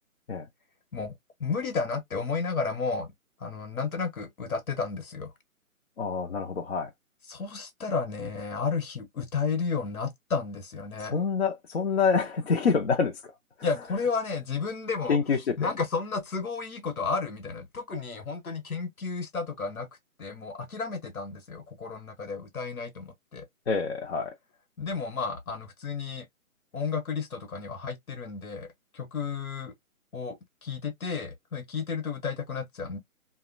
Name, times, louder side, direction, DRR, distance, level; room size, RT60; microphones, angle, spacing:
voice 1, 1.4-3.1 3.4-5.3 7.3-11.1 13.6-19.9 20.2-23.5 24.8-26.3 26.7-28.7 28.9-29.7 30.1-33.0, left 5 dB, 75° left, 1.1 m, -32 dB
voice 2, 6.0-6.9 11.1-13.2 15.1-15.7 23.7-24.3, left 5 dB, 50° left, 0.6 m, -26 dB
2.7 x 2.2 x 2.5 m
figure-of-eight pair, 155°, 42 cm